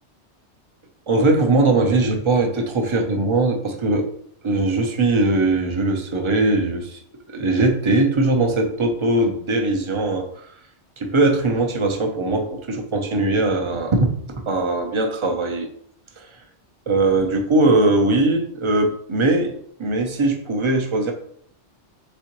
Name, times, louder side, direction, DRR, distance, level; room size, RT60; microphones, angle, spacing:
voice 1, 1.1-4.0 4.4-7.0 7.3-10.4 11.0-15.7 16.2-16.3 16.9-19.5 19.8-21.1, right 2 dB, 35° right, 2 dB, 0.5 m, -20 dB
4.2 x 3.6 x 3.0 m, 0.66 s
omnidirectional pair, 1.2 m